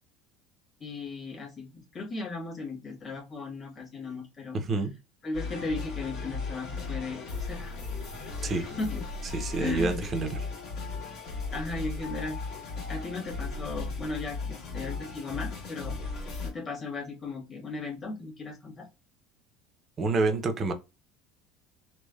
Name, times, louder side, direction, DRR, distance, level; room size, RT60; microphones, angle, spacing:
voice 1, 0.8-4.6 5.2-7.7 8.3-9.0 9.6-10.0 11.5-12.4 12.9-16.0 16.4-18.9, left 3 dB, 25° left, 1.3 m, -36 dB
voice 2, 4.5-4.9 8.4-8.7 9.3-10.5 20.0-20.7, right 3 dB, 30° right, 0.5 m, -28 dB
sound 1, 5.3-16.5, left 4 dB, 60° left, 1.4 m, -36 dB
3.2 x 2.1 x 2.3 m
cardioid pair, 140°, 0 cm